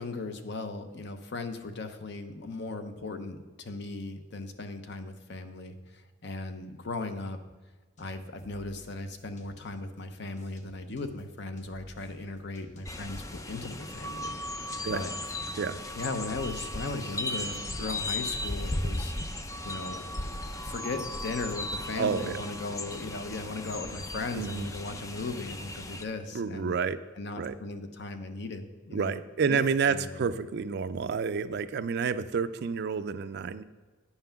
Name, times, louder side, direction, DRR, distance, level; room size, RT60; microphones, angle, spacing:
voice 1, 0.0-7.4 8.0-14.3 14.9-15.1 16.0-19.1 19.6-20.3 20.6-26.8 27.2-29.2 29.5-29.6 29.9-30.2, left 3 dB, 55° left, 8 dB, 0.7 m, -37 dB
sound 1, 8.0-10.0 10.4-14.4, right 1 dB, 35° left, 1.0 m, -54 dB
sound 2, 12.8-26.0, left 1 dB, 15° left, 0.4 m, -36 dB
voice 2, 22.0-22.4 24.4-24.7 26.3-27.0 27.4-27.6 28.9-33.6, right 5 dB, 50° right, 13 dB, 0.4 m, -29 dB
9.7 x 5.7 x 5.7 m, 1.3 s
head